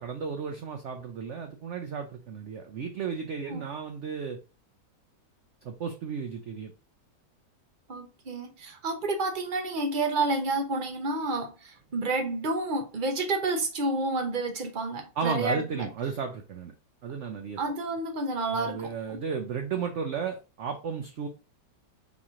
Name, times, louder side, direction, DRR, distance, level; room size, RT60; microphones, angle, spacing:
voice 1, 0.0-4.4 5.6-6.7 15.2-16.7 17.0-17.6 18.5-21.3, right 6 dB, 85° right, 0.6 m, -34 dB
voice 2, 7.9-15.9 17.6-19.2, right 2 dB, 45° right, 0.6 m, -30 dB
4.1 x 3.0 x 3.6 m
omnidirectional pair, 1.9 m